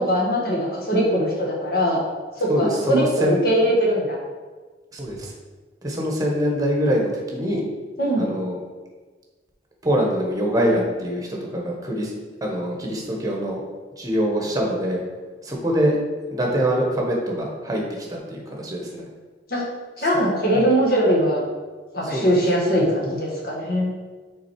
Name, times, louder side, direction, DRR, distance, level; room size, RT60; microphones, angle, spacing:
voice 1, 0.0-2.0 2.4-4.2 8.0-8.3 19.5-19.6 20.0-21.4 21.9-23.9, equal, 55° left, -4 dB, 1.7 m, -21 dB
voice 2, 2.5-3.4 4.9-5.3 5.8-7.6 8.2-8.6 9.8-12.1 12.4-13.6 14.0-15.0 15.4-16.0 16.3-19.1 20.5-20.6 22.0-22.4, equal, 20° right, 0 dB, 1.2 m, -24 dB
6.0 x 3.9 x 4.7 m, 1.4 s
head